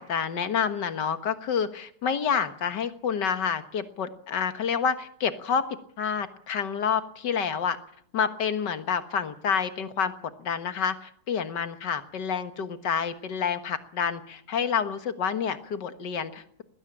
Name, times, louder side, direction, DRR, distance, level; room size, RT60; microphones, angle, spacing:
voice 1, 0.0-5.7 6.0-7.8 8.1-10.1 10.4-16.6, left 7 dB, 70° left, 10 dB, 2.1 m, -28 dB
20.5 x 16.5 x 8.7 m, 0.64 s
omnidirectional pair, 1.9 m